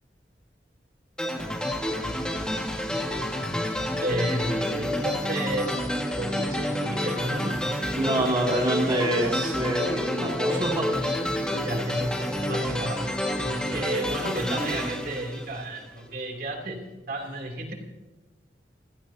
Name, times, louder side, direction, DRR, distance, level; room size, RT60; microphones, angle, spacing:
sound 1, 1.2-16.0, left 1 dB, 5° left, 1.7 m, -29 dB
voice 1, 4.0-5.8 6.2-7.6 11.5-12.1 12.4-13.0 13.7-17.7, right 1 dB, 55° right, 1 dB, 3.0 m, -32 dB
voice 2, 7.9-11.3, right 1 dB, 30° right, -3 dB, 2.4 m, -26 dB
30.0 x 16.5 x 2.8 m, 1.1 s
head